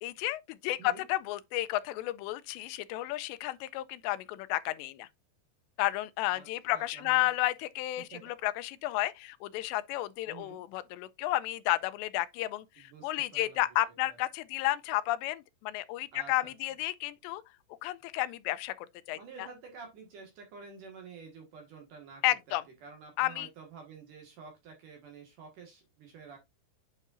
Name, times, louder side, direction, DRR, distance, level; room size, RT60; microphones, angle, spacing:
voice 1, 0.0-5.1 5.8-17.4 17.8-19.2 22.2-22.6 23.2-23.5, left 17 dB, 85° left, 2.8 m, -32 dB
voice 2, 0.7-1.0 6.3-7.3 8.0-8.3 10.3-10.7 12.8-14.2 16.1-16.5 19.1-26.4, right 5 dB, 60° right, 2.7 m, -50 dB
8.6 x 5.4 x 2.5 m
omnidirectional pair, 5.0 m